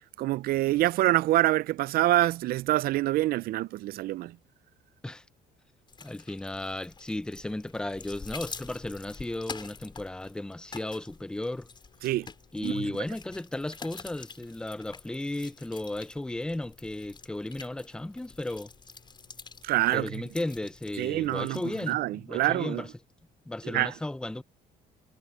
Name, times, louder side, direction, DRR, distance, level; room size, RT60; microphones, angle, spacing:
voice 1, 0.2-4.4 12.0-12.3 12.6-12.9 19.6-20.2 21.0-21.6 21.9-22.8 23.6-23.9, right 16 dB, 65° right, 0.4 m, -26 dB
sound 1, 5.9-21.9, left 4 dB, 25° left, 5.5 m, -47 dB
voice 2, 6.0-11.7 12.5-18.7 19.9-22.9 23.5-24.4, left 1 dB, 5° left, 0.5 m, -35 dB
sound 2, 10.2-22.2, left 15 dB, 80° left, 6.4 m, -72 dB
cardioid pair, 110°, 17 cm